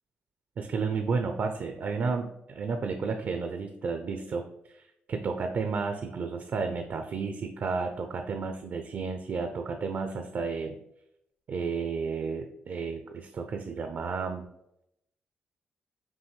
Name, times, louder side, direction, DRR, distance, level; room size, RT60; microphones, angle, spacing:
voice 1, 0.6-4.4 4.7-10.8 11.5-14.5, right 5 dB, 55° right, 5 dB, 0.4 m, -32 dB
5.4 x 2.6 x 3.2 m, 0.80 s
cardioid pair, 70°, 4 cm